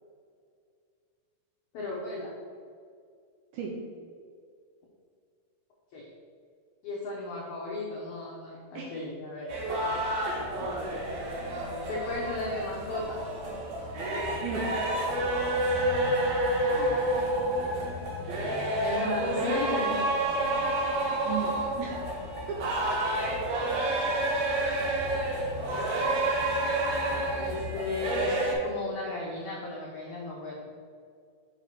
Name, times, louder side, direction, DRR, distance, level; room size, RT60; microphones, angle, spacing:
voice 1, 1.7-2.3 5.9-6.1 6.8-9.6 11.9-13.2 16.7-16.9 17.3-17.7 18.8-20.1 27.3-30.7, left 2 dB, 75° left, -5 dB, 1.7 m, -35 dB
sound 1, 9.5-28.5, right 1 dB, 65° right, 1.9 m, -29 dB
voice 2, 9.7-10.6 14.4-14.7 21.2-22.1 22.5-23.0 23.6-23.9, right 5 dB, 85° right, -2 dB, 2.2 m, -37 dB
7.0 x 3.0 x 5.7 m, 2.2 s
omnidirectional pair, 4.5 m